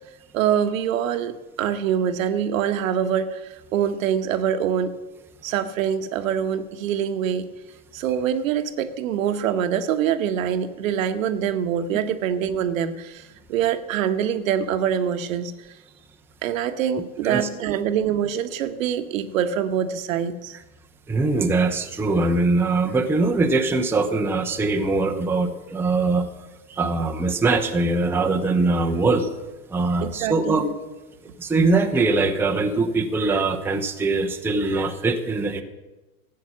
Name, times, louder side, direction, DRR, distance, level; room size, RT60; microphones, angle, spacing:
voice 1, 0.3-4.9 5.4-7.5 7.9-15.5 16.4-20.6 30.0-30.6, right 9 dB, 60° right, 9 dB, 1.2 m, -24 dB
voice 2, 21.1-26.3 26.7-29.3 29.7-30.7 31.4-35.6, right 3 dB, 5° right, 3 dB, 0.7 m, -22 dB
14.5 x 8.5 x 6.1 m, 1.1 s
hypercardioid pair, 110°, 45 cm